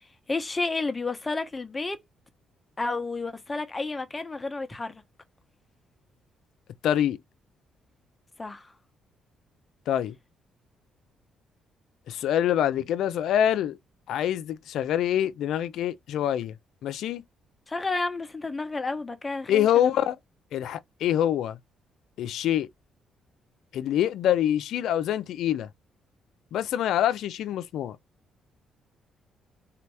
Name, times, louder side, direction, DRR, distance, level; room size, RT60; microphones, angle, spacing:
voice 1, 0.3-2.0 2.8-5.0 8.4-8.7 17.7-19.9, left 3 dB, 20° left, 1.1 m, -31 dB
voice 2, 6.8-7.2 9.9-10.1 12.1-13.8 14.1-16.5 16.8-17.2 19.5-20.2 20.5-21.6 22.2-22.7 23.7-25.7 26.5-28.0, left 10 dB, 80° left, 0.6 m, -25 dB
4.1 x 2.9 x 3.4 m
cardioid pair, 90°, 0 cm